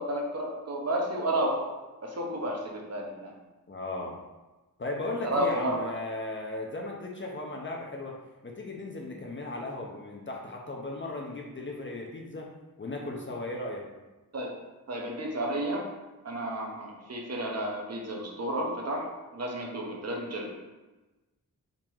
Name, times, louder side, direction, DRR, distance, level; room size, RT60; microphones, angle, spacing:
voice 1, 0.0-1.7 2.0-3.3 5.2-5.9 14.3-14.5 14.9-15.9 16.2-20.6, right 1 dB, 45° right, 0 dB, 0.9 m, -31 dB
voice 2, 3.7-4.2 4.8-8.2 8.4-12.5 12.8-13.9, left 2 dB, 35° left, 0 dB, 0.6 m, -36 dB
3.8 x 2.9 x 4.5 m, 1.1 s
wide cardioid pair, 115°, 36 cm